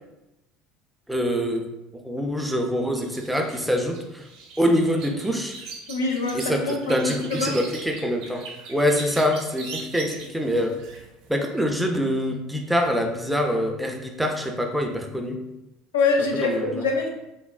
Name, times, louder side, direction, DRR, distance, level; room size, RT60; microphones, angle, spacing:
voice 1, 1.1-1.7 2.0-4.2 4.6-5.6 6.3-10.8 11.3-15.4 16.3-16.8, equal, 5° right, 3 dB, 0.4 m, -25 dB
sound 1, 2.9-11.3 11.6-11.7, right 3 dB, 60° right, 0.6 m, -40 dB
voice 2, 5.9-7.5 15.9-17.1, left 3 dB, 75° left, 1 dB, 0.4 m, -24 dB
3.2 x 2.0 x 2.3 m, 0.93 s
figure-of-eight pair, 65°, 0 cm